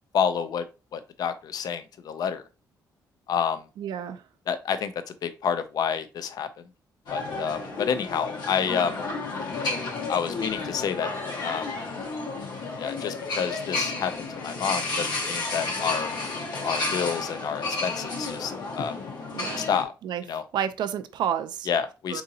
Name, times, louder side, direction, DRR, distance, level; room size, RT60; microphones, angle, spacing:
voice 1, 0.1-0.6 0.9-2.4 3.3-3.7 4.5-6.5 7.1-9.0 9.9-11.1 11.4-11.7 12.8-16.1 16.6-18.9 19.6-19.9 20.3-20.4 21.7-22.2, left 7 dB, 60° left, 0.4 m, -29 dB
voice 2, 3.8-4.2 19.3-19.7 20.0-20.2 20.5-21.7 22.1-22.2, right 9 dB, 75° right, 0.4 m, -30 dB
sound 1, 7.1-19.8, left 3 dB, 75° left, 1.1 m, -32 dB
3.7 x 2.7 x 2.7 m
cardioid pair, 110°, 8 cm